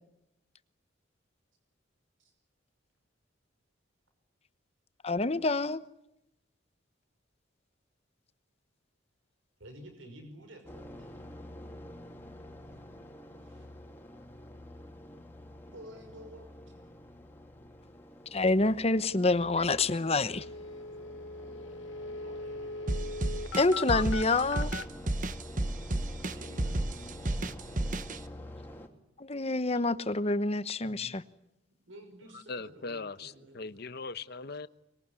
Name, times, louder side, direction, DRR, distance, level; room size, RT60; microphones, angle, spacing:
voice 1, 5.0-5.8 18.3-20.4 23.6-24.8 29.2-31.2, left 3 dB, 30° left, 1.0 m, -27 dB
voice 2, 9.6-11.1 12.6-12.8 13.4-13.7 15.7-16.7 22.2-22.8 26.2-27.9 31.9-33.7, equal, 75° right, 5.5 m, -52 dB
sound 1, 10.6-28.9, left 1 dB, 10° left, 2.9 m, -48 dB
sound 2, 19.6-19.7 19.9-20.0 20.2-24.8, left 3 dB, 75° left, 1.4 m, -39 dB
sound 3, 22.9-28.2, right 1 dB, 40° right, 1.1 m, -32 dB
voice 3, 30.8-31.2 32.5-34.7, left 4 dB, 55° left, 1.0 m, -40 dB
24.0 x 22.0 x 9.7 m
head